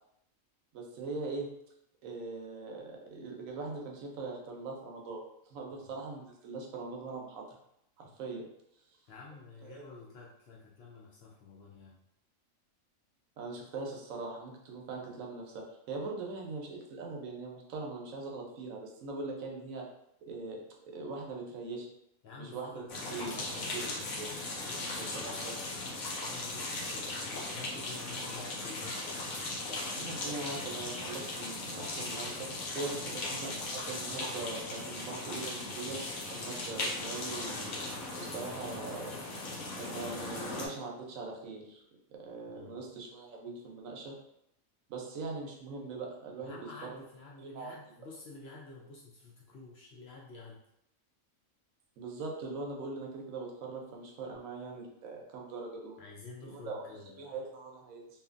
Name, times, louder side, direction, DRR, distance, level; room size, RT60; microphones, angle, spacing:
voice 1, 0.7-1.5 2.0-5.2 5.5-7.4 8.0-8.5 9.7-9.8 13.4-19.9 20.3-20.6 20.9-21.9 22.4-22.8 23.1-23.3 23.7-24.4 25.0-25.5 30.0-32.5 32.7-36.0 36.4-37.8 38.2-39.2 39.7-41.8 42.1-44.2 44.9-46.6 47.4-47.7 52.0-56.0 56.5-56.9 57.2-58.1, right 3 dB, 80° right, 0 dB, 1.0 m, -41 dB
voice 2, 9.1-11.9 22.2-24.1 24.6-25.4 25.8-29.0 33.0-33.2 42.5-42.8 46.4-50.6 56.0-57.4, left 3 dB, 60° left, -4 dB, 0.7 m, -50 dB
sound 1, 22.9-40.7, left 2 dB, 85° left, 1.1 m, -38 dB
2.7 x 2.4 x 2.4 m, 0.76 s
omnidirectional pair, 1.4 m